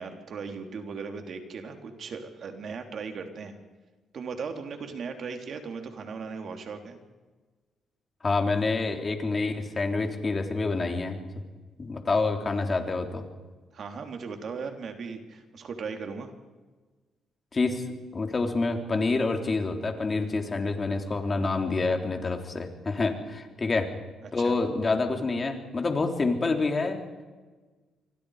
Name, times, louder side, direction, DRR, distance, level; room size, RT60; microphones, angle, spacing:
voice 1, 0.0-3.5 4.1-7.0 13.7-16.3 24.2-24.5, right 5 dB, 55° right, 5 dB, 3.4 m, -37 dB
voice 2, 8.2-11.2 11.8-13.2 17.5-17.8 18.1-23.9 24.3-27.0, left 3 dB, 30° left, 4 dB, 3.6 m, -27 dB
27.0 x 24.0 x 5.1 m, 1.3 s
cardioid pair, 90°, 0 cm